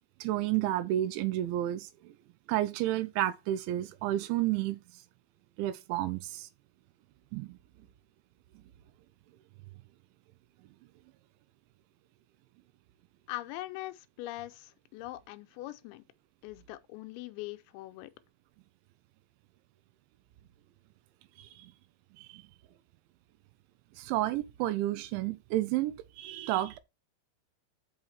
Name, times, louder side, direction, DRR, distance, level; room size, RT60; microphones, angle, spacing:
voice 1, 0.2-2.1 2.5-4.8 5.6-6.5 7.3-7.6 21.4-21.7 22.2-22.4 24.0-26.8, right 14 dB, 85° right, 3.0 m, -31 dB
voice 2, 13.3-16.0 16.4-18.1, left 17 dB, 85° left, 2.9 m, -42 dB
6.3 x 5.6 x 4.5 m
omnidirectional pair, 5.4 m